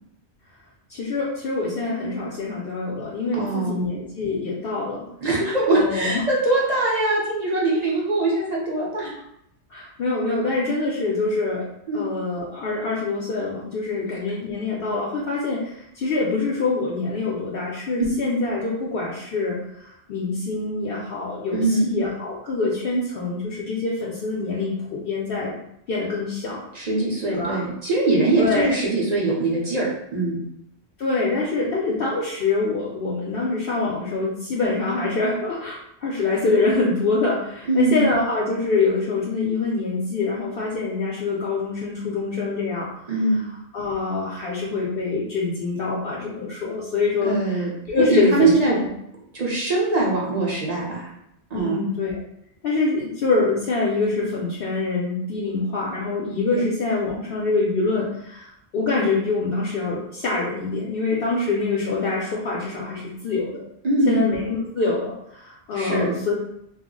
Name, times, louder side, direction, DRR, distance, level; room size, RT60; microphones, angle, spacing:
voice 1, 0.9-5.1 5.7-6.2 9.7-11.6 11.9-19.6 19.8-25.5 25.9-26.6 27.3-27.6 28.4-28.7 31.0-42.9 43.7-48.8 51.5-52.2 52.6-58.5 58.7-63.6 64.1-66.3, left 3 dB, 65° left, -5 dB, 0.7 m, -25 dB
voice 2, 3.3-3.8 5.2-9.2 11.9-12.1 21.5-21.9 26.7-30.4 37.7-38.0 43.1-43.4 47.2-47.7 48.1-48.8 49.3-51.1 51.5-51.8 63.8-64.2 65.7-66.1, right 2 dB, 45° right, -4 dB, 0.7 m, -22 dB
2.3 x 2.0 x 3.7 m, 0.77 s
omnidirectional pair, 1.1 m